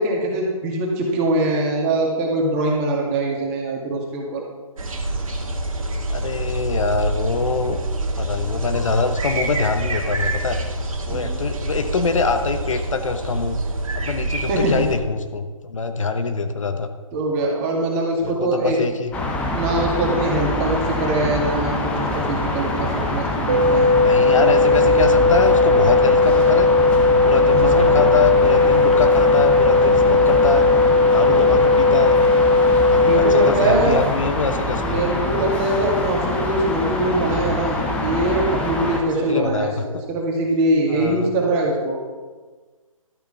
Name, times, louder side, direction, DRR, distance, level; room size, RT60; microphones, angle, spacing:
voice 1, 0.0-4.4 11.1-11.4 14.5-14.9 17.1-18.8 19.5-23.9 24.3-24.7 27.5-28.1 31.3-31.6 33.0-34.0 34.8-42.0, right 2 dB, 20° right, -1 dB, 2.1 m, -22 dB
sound 1, 4.8-15.0, right 2 dB, 70° right, 2.0 m, -26 dB
voice 2, 6.1-7.8 8.2-10.6 11.1-13.6 13.9-16.9 18.2-19.2 24.0-26.7 27.2-30.7 31.1-32.2 32.9-35.0 39.3-40.0 40.9-41.3, left 4 dB, 65° left, 8 dB, 1.0 m, -24 dB
sound 2, 19.1-39.0, left 2 dB, 5° left, 0.7 m, -24 dB
sound 3, 23.5-33.5, left 3 dB, 40° right, 1.3 m, -16 dB
12.5 x 6.9 x 5.5 m, 1.4 s
figure-of-eight pair, 150°, 18 cm